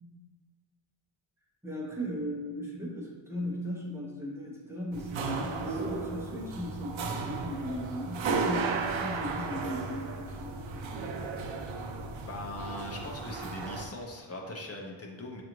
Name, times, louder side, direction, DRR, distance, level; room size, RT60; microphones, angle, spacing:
voice 1, 1.6-10.9, equal, 5° right, -5 dB, 0.7 m, -37 dB
sound 1, 4.9-13.9, right 4 dB, 70° right, 0.5 m, -34 dB
voice 2, 12.3-15.4, left 1 dB, 30° left, 0 dB, 0.5 m, -40 dB
5.4 x 2.5 x 3.0 m, 1.4 s
wide cardioid pair, 170°, 49 cm